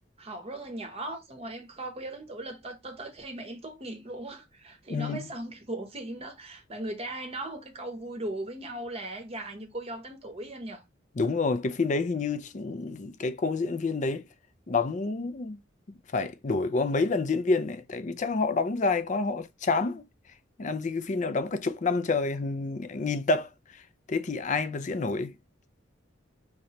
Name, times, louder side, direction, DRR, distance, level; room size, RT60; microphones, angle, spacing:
voice 1, 0.2-10.8, right 1 dB, 30° right, 0.8 m, -38 dB
voice 2, 4.9-5.3 11.2-14.2 14.7-15.6 15.9-20.1 20.6-23.5 24.1-25.3, left 3 dB, 40° left, 0.4 m, -28 dB
5.2 x 3.0 x 2.8 m
head